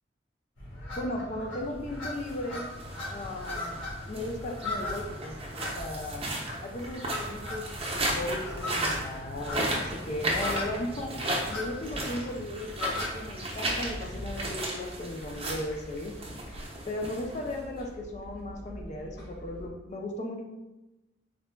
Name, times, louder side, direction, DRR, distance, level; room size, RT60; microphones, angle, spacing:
sound 1, 0.6-14.4, left 2 dB, 85° left, 1.3 m, -39 dB
voice 1, 1.0-2.7 3.1-6.3 6.6-7.7 7.9-11.1 11.5-16.2 16.9-20.4, left 1 dB, 35° left, 1 dB, 0.4 m, -36 dB
sound 2, 2.1-17.8, right 1 dB, 30° right, 0.6 m, -35 dB
sound 3, 13.6-19.7, equal, 55° left, 0.9 m, -45 dB
3.8 x 2.2 x 3.2 m, 1.0 s
head